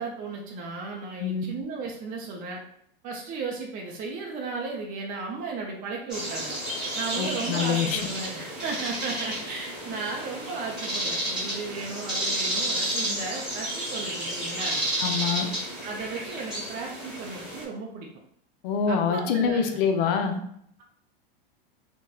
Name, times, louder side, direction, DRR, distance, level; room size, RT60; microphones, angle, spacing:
voice 1, 0.0-2.6 3.0-6.5 6.9-14.8 15.8-18.1 18.9-19.8, right 4 dB, 30° right, 0 dB, 0.4 m, -35 dB
sound 1, 6.1-17.6, right 1 dB, ahead, 1.2 m, -31 dB
voice 2, 7.2-8.0 15.0-15.5 18.6-20.4, left 6 dB, 65° left, 5 dB, 0.5 m, -25 dB
2.8 x 2.1 x 2.3 m, 0.70 s
supercardioid pair, 125°, 29 cm